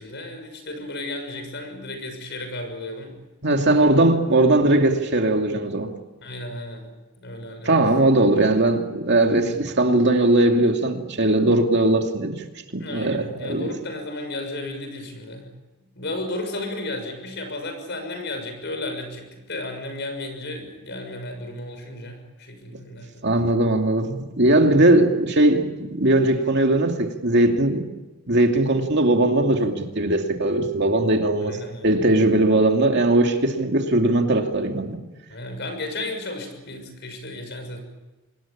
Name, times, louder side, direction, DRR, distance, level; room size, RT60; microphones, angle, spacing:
voice 1, 0.0-3.2 3.8-3.9 6.2-6.9 7.2-7.9 9.4-9.5 12.8-15.5 15.9-23.3 31.5-32.0 35.3-37.8, left 2 dB, 50° left, 6.5 m, -34 dB
voice 2, 3.4-5.9 7.6-12.4 12.7-13.7 23.2-27.9 28.3-31.6 31.8-35.0, right 2 dB, 50° right, 2.6 m, -19 dB
26.0 x 20.5 x 8.7 m
head